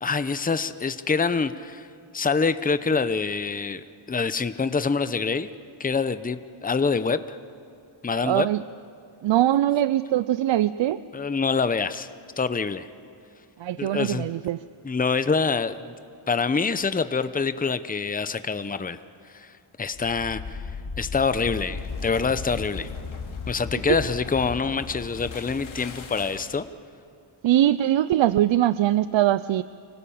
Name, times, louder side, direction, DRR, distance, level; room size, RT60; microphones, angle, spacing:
voice 1, 0.0-1.9 2.1-5.5 5.8-7.4 8.0-8.5 11.1-12.1 12.4-12.9 13.8-14.3 14.8-15.9 16.3-19.0 19.3-19.5 19.8-20.7 21.0-22.9 23.5-26.6, left 5 dB, 20° left, 12 dB, 0.7 m, -26 dB
voice 2, 8.2-8.6 9.2-11.0 13.6-14.6 23.9-24.0 27.4-29.6, right 13 dB, 70° right, 16 dB, 0.5 m, -22 dB
quake and break, 19.8-26.7, left 5 dB, 80° left, 2.6 m, -36 dB
26.0 x 18.0 x 8.7 m, 2.4 s
wide cardioid pair, 100°, 47 cm